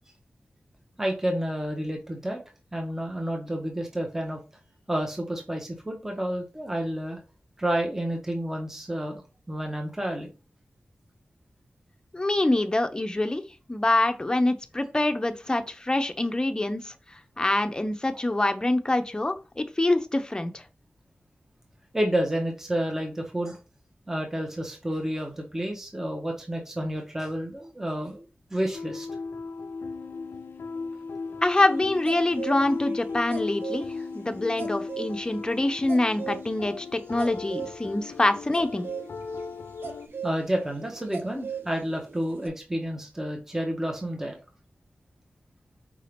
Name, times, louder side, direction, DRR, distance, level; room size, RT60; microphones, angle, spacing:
voice 1, 1.0-2.4 2.7-4.4 4.9-7.2 7.6-9.2 9.5-10.3 21.9-23.6 24.1-29.1 40.2-44.4, right 1 dB, 10° right, 1 dB, 0.9 m, -30 dB
voice 2, 12.1-13.4 13.7-16.9 17.4-20.6 31.4-33.8 34.1-38.9, left 2 dB, 20° left, 8 dB, 0.6 m, -25 dB
sound 1, 28.7-40.1, left 4 dB, 75° left, 0.3 m, -37 dB
sound 2, 31.7-33.8 34.2-34.3 34.6-42.5, right 6 dB, 70° right, 0.6 m, -38 dB
4.7 x 2.8 x 3.4 m, 0.32 s
wide cardioid pair, 65°, 4 cm